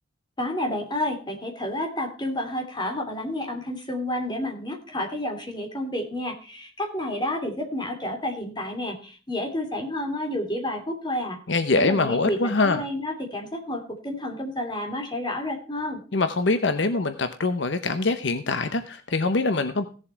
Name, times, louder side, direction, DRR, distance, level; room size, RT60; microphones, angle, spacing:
voice 1, 0.4-11.4 11.7-16.0, left 1 dB, 25° left, 3 dB, 3.0 m, -30 dB
voice 2, 11.5-12.8 16.1-19.9, left 3 dB, 60° left, 10 dB, 0.8 m, -24 dB
16.0 x 7.3 x 4.6 m, 0.38 s
head